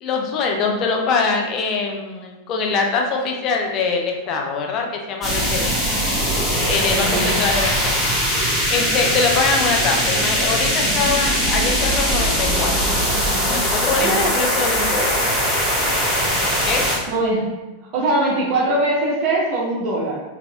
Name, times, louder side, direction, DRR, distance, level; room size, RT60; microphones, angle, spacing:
voice 1, 0.0-5.7 6.6-8.0 8.7-12.7 13.5-15.2 16.6-16.9, left 4 dB, 35° left, 1 dB, 0.5 m, -23 dB
sound 1, 5.2-17.0, equal, 10° left, 1.3 m, -20 dB
voice 2, 6.9-7.3 14.0-14.2 17.1-17.5 17.9-20.2, right 2 dB, 40° right, -3 dB, 0.7 m, -21 dB
3.8 x 2.8 x 2.3 m, 1.1 s
figure-of-eight pair, 90°, 0 cm